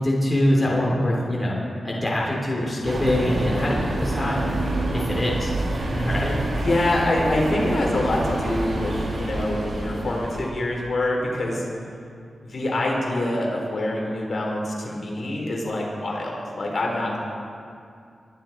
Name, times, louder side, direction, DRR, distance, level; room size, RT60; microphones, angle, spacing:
voice 1, 0.0-4.6 4.9-5.5 5.9-6.3, left 1 dB, 25° left, -4 dB, 3.1 m, -23 dB
sound 1, 2.8-10.5, right 2 dB, 60° right, 2.4 m, -27 dB
voice 2, 6.6-11.6 12.4-17.2, left 1 dB, 60° left, -2 dB, 3.8 m, -25 dB
22.5 x 11.0 x 4.4 m, 2.4 s
cardioid pair, 75°, 0 cm